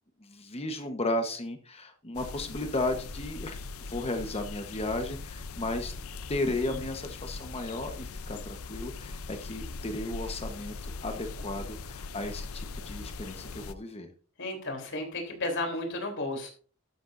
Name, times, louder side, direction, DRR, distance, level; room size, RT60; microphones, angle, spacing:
voice 1, 0.2-3.6 3.9-5.9 6.3-14.1, left 2 dB, 30° left, 6 dB, 1.1 m, -34 dB
sound 1, 2.1-13.7, left 3 dB, 85° left, 0.6 m, -40 dB
voice 2, 14.4-16.5, left 2 dB, 60° left, 3 dB, 3.6 m, -33 dB
12.5 x 10.5 x 2.6 m, 0.40 s
head